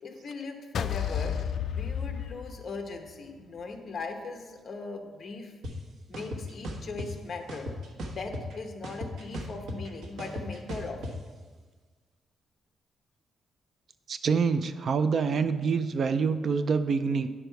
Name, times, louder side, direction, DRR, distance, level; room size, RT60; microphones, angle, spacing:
voice 1, 0.0-1.4 1.7-5.5 6.1-7.7 8.0-11.1, left 3 dB, 40° left, 4 dB, 1.0 m, -39 dB
sound 1, 0.7-3.1, left 8 dB, 55° left, 0.3 m, -31 dB
sound 2, 5.6-5.7 6.1-7.1 7.5-8.6 8.8-11.1, equal, 90° right, 1.2 m, -37 dB
voice 2, 14.1-17.3, right 5 dB, 40° right, 11 dB, 0.3 m, -26 dB
9.9 x 6.8 x 4.6 m, 1.4 s
wide cardioid pair, 175°, 0 cm